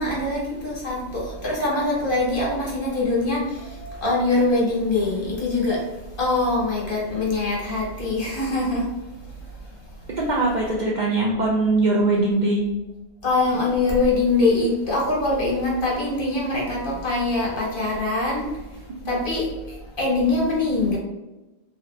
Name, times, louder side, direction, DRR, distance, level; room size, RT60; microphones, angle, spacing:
voice 1, 0.0-5.9 6.1-8.9 13.2-21.0, left 2 dB, 55° left, -4 dB, 1.2 m, -23 dB
voice 2, 10.2-12.6 19.0-19.2, right 2 dB, 55° right, -3 dB, 0.6 m, -21 dB
3.0 x 2.4 x 3.2 m, 1.1 s
omnidirectional pair, 1.1 m